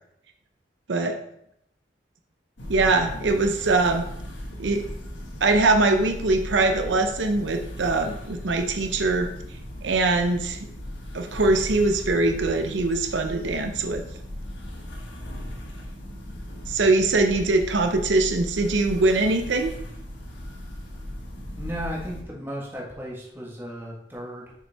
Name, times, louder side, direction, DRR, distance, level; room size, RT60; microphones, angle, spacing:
voice 1, 0.9-1.2 2.7-4.1 4.6-4.8 5.4-9.3 9.8-10.6 11.1-14.0 16.7-19.7, right 3 dB, 80° right, 6 dB, 0.6 m, -22 dB
sound 1, 2.6-22.2, equal, 80° left, 1.3 m, -37 dB
voice 2, 21.6-24.5, equal, 10° right, -3 dB, 1.4 m, -35 dB
6.3 x 5.5 x 3.4 m, 0.74 s
head